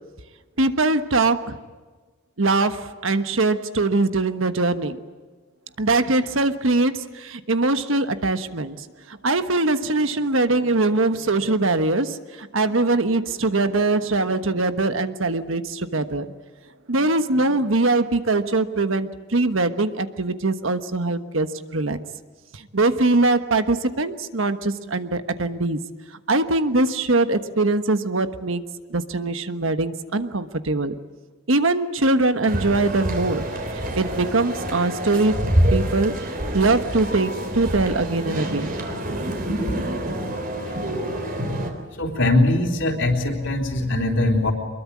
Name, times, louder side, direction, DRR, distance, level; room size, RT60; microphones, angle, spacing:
voice 1, 0.6-1.6 2.4-5.0 5.8-16.3 16.9-22.0 22.5-25.8 26.3-28.6 28.9-30.9 31.5-35.4 35.7-36.1 36.5-38.7, right 2 dB, 70° right, 10 dB, 1.3 m, -22 dB
sound 1, 32.5-41.7, right 1 dB, 45° right, 3.7 m, -26 dB
voice 2, 42.0-44.5, left 2 dB, 65° left, 3 dB, 3.7 m, -21 dB
24.5 x 22.0 x 8.7 m, 1.4 s
head